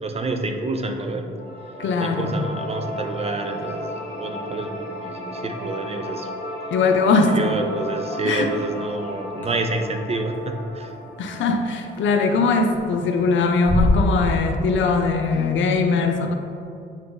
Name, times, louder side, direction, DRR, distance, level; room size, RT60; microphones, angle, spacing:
voice 1, 0.0-1.3 2.0-6.3 7.1-11.0, right 2 dB, 30° right, 5 dB, 0.6 m, -28 dB
sound 1, 1.4-12.4, equal, 55° left, 1.4 m, -35 dB
voice 2, 1.8-2.4 6.7-7.4 8.2-8.5 11.2-16.3, left 4 dB, 70° left, 5 dB, 0.7 m, -20 dB
sound 2, 8.5-8.6 9.4-9.5 10.3-10.4 11.9-12.3 12.6-13.1 13.4-14.7 15.0-15.1 15.2-15.5, left 2 dB, 10° left, 1.4 m, -23 dB
8.9 x 3.7 x 3.9 m, 2.6 s
cardioid pair, 90°, 20 cm